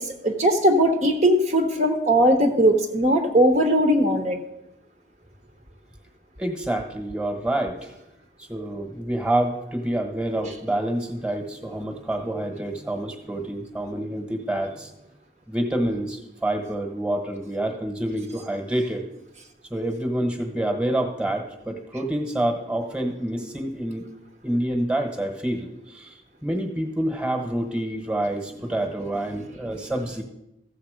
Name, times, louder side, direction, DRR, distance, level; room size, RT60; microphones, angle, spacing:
voice 1, 0.0-4.4, equal, 40° right, 4 dB, 0.9 m, -19 dB
voice 2, 6.4-7.9 8.4-14.9 15.5-19.0 19.7-24.0 24.4-26.1 26.4-30.2, right 1 dB, 5° right, 4 dB, 1.3 m, -27 dB
14.0 x 7.3 x 5.0 m, 0.88 s
head